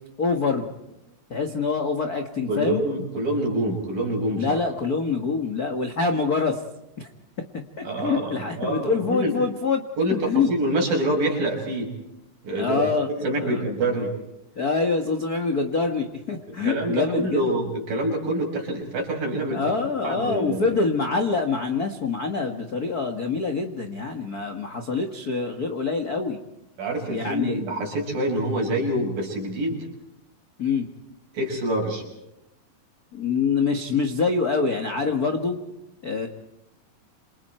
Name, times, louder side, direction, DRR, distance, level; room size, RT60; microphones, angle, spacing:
voice 1, 0.2-0.7 1.3-2.8 4.4-6.6 7.0-7.1 7.5-9.8 10.1-10.5 12.6-13.1 13.4-13.6 14.5-17.4 19.5-26.4 27.1-27.6 30.6-30.9 33.1-35.6 36.0-36.3, left 4 dB, 40° left, 5 dB, 1.5 m, -25 dB
voice 2, 2.5-4.6 7.8-9.3 10.0-11.9 12.4-14.1 16.6-19.7 20.0-20.7 26.8-29.9 31.3-32.0, right 1 dB, 85° right, 1 dB, 7.9 m, -26 dB
28.5 x 28.0 x 4.5 m, 0.89 s
omnidirectional pair, 3.9 m